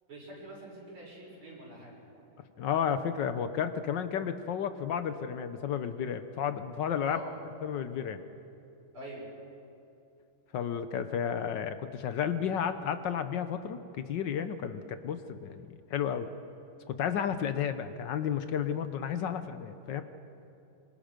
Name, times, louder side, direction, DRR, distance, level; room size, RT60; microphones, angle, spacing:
voice 1, 0.1-1.9 7.0-7.3 8.9-9.2, right 1 dB, 90° right, -5 dB, 7.0 m, -45 dB
voice 2, 2.6-7.2 7.6-8.2 10.5-16.3 16.9-20.0, left 8 dB, 65° left, 10 dB, 1.4 m, -32 dB
25.5 x 23.5 x 5.2 m, 2.7 s
omnidirectional pair, 2.3 m